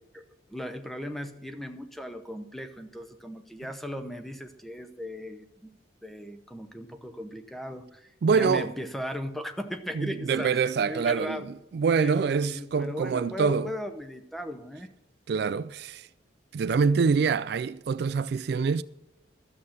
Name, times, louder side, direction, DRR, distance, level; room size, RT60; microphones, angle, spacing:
voice 1, 0.5-5.7 6.0-10.6 10.9-11.5 12.0-14.9, equal, ahead, 0.7 m, -37 dB
voice 2, 8.2-8.7 9.9-13.7 15.3-16.1 16.5-18.8, right 5 dB, 60° right, 0.3 m, -25 dB
12.5 x 7.1 x 6.4 m
head